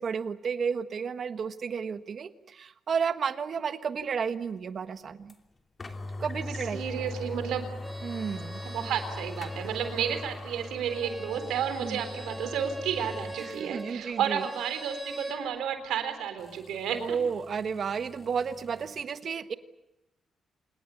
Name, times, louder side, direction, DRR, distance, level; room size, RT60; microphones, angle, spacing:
voice 1, 0.0-5.3 6.2-6.8 8.0-8.6 11.8-12.0 13.4-14.5 17.0-19.5, right 6 dB, 60° right, 11 dB, 1.4 m, -32 dB
sound 1, 5.3-5.4 5.8-13.4 13.8-13.9 16.4-19.0, left 2 dB, 40° left, 3.0 m, -41 dB
voice 2, 6.7-7.7 8.7-17.2, right 8 dB, 85° right, 9 dB, 3.8 m, -32 dB
Bowed string instrument, 7.8-15.4, right 1 dB, 15° right, 6.2 m, -44 dB
27.5 x 20.5 x 8.3 m, 0.92 s
supercardioid pair, 60°, 0 cm